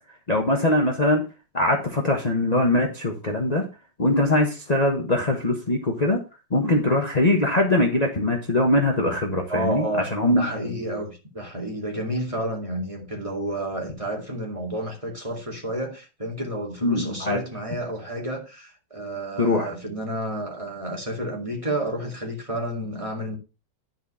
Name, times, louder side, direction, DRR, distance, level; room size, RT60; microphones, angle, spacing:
voice 1, 0.3-1.2 1.5-3.6 4.0-6.2 6.5-9.8 10.1-10.5 16.8-17.4 19.4-19.7, left 1 dB, 25° left, 1.3 m, -22 dB
voice 2, 9.5-23.4, right 1 dB, 20° right, 2.3 m, -30 dB
10.5 x 4.6 x 5.6 m
omnidirectional pair, 1.9 m